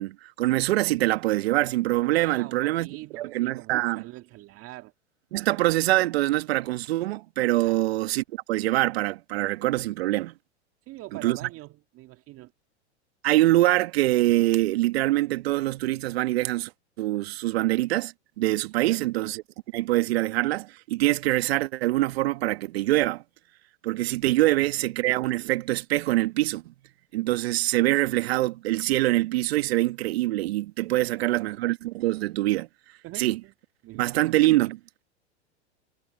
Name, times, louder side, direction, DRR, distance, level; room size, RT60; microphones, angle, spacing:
voice 1, 0.0-2.9 3.1-4.0 5.3-10.3 11.2-11.4 13.2-16.7 17.0-19.4 19.7-23.2 23.8-26.7 27.1-32.7 33.2-33.4 34.0-34.8, right 17 dB, 60° right, 2.0 m, -24 dB
voice 2, 2.1-4.9 7.6-7.8 10.9-12.5 18.7-19.1 24.6-24.9 31.0-31.6 33.0-33.5 33.8-34.3, right 18 dB, 40° right, 2.2 m, -45 dB
hypercardioid pair, 100°, 35 cm